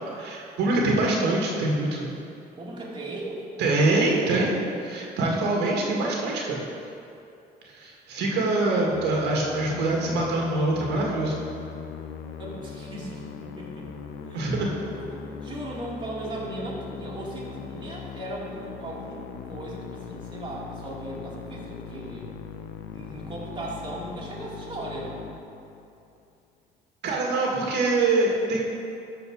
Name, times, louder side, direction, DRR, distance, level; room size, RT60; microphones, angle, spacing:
voice 1, 0.2-2.1 3.6-4.5 4.8-6.6 7.6-11.3 14.3-14.7 27.0-28.6, right 2 dB, 80° right, -2 dB, 1.9 m, -24 dB
voice 2, 2.6-3.5 3.8-4.7 8.2-8.3 8.6-9.1 12.4-13.9 14.3-14.5 14.9-22.3 22.9-25.2, right 1 dB, 30° right, -5 dB, 2.5 m, -37 dB
Musical instrument, 8.9-26.1, left 7 dB, 85° left, 0.8 m, -40 dB
13.0 x 4.8 x 6.3 m, 2.7 s
cardioid pair, 110°, 17 cm